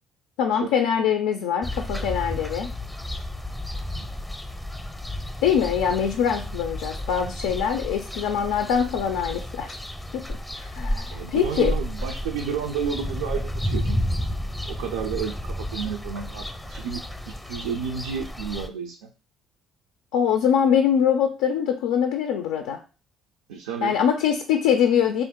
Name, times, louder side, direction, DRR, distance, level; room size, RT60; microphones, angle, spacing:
voice 1, 0.4-2.7 5.4-9.8 10.1-10.2 10.6-11.7 20.1-22.8 23.8-25.2, left 8 dB, 80° left, 5 dB, 0.4 m, -23 dB
sound 1, 1.6-18.7, left 1 dB, 10° left, 0.6 m, -32 dB
voice 2, 11.1-14.0 14.7-19.1 23.5-24.0, right 7 dB, 85° right, 2 dB, 0.3 m, -31 dB
3.5 x 2.4 x 3.6 m, 0.34 s
hypercardioid pair, 55°, 0 cm